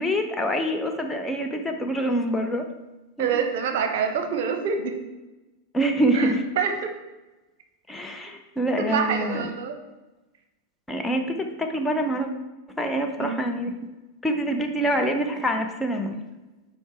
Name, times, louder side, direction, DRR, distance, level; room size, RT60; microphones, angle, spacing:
voice 1, 0.0-2.7 3.2-3.3 5.7-6.4 7.9-9.5 10.9-12.3 12.8-13.7 14.2-16.2, right 1 dB, 10° left, 3 dB, 0.7 m, -25 dB
voice 2, 3.2-4.9 6.1-6.9 8.8-9.7 13.2-13.5, right 6 dB, 55° right, 5 dB, 0.9 m, -26 dB
7.3 x 4.5 x 4.4 m, 1.1 s
figure-of-eight pair, 90°, 0 cm